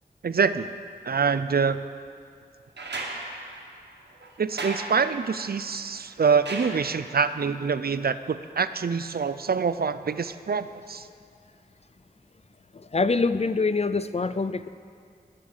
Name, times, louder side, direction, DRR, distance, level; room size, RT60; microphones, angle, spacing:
voice 1, 0.2-0.7 1.0-1.8 4.4-11.1, right 5 dB, 65° right, 12 dB, 0.5 m, -25 dB
sound 1, 2.8-7.4 8.9-9.0, right 2 dB, 85° right, 1.5 m, -37 dB
voice 2, 12.7-14.7, left 4 dB, 40° left, 13 dB, 0.5 m, -25 dB
20.0 x 6.8 x 5.5 m, 2.3 s
wide cardioid pair, 65°, 17 cm